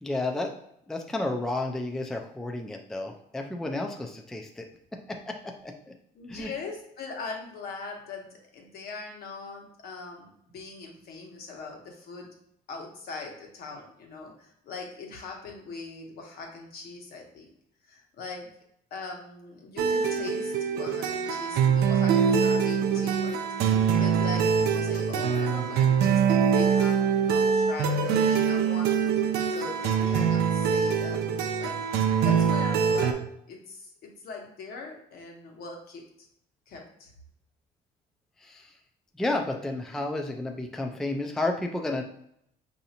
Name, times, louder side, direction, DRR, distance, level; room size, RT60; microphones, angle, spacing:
voice 1, 0.0-0.5 0.9-4.7 5.1-5.9 6.3-6.5 38.4-38.7 39.2-42.0, left 2 dB, 5° left, 3 dB, 0.4 m, -31 dB
voice 2, 6.1-12.3 12.7-17.5 17.8-18.5 18.9-23.4 23.6-31.2 31.6-33.2 33.5-36.0 36.7-37.1, left 4 dB, 65° left, 1 dB, 1.1 m, -41 dB
sound 1, 19.8-33.1, right 7 dB, 80° right, 0.5 m, -24 dB
4.9 x 2.7 x 2.8 m, 0.73 s
cardioid pair, 110°, 17 cm